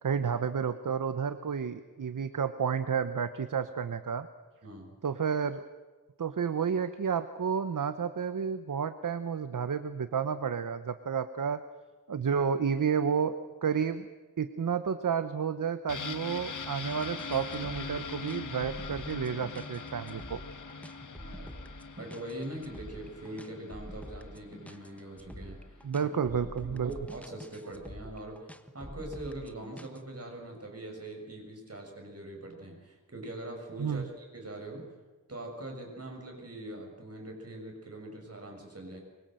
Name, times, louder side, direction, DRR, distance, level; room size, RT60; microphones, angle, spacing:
voice 1, 0.0-4.3 5.0-5.6 6.2-11.6 12.1-14.1 14.4-20.4 25.8-26.9 33.8-34.1, right 7 dB, 70° right, 11 dB, 1.0 m, -31 dB
voice 2, 4.6-4.9 21.1-21.5 22.0-28.5 28.7-34.9 35.3-39.0, right 1 dB, 45° right, 2 dB, 6.8 m, -42 dB
sound 1, 15.9-25.5 25.8-25.9, left 5 dB, 65° left, 1.3 m, -42 dB
sound 2, 16.9-30.0, equal, 5° left, 1.3 m, -47 dB
24.5 x 23.0 x 7.8 m, 1.2 s
wide cardioid pair, 90°, 33 cm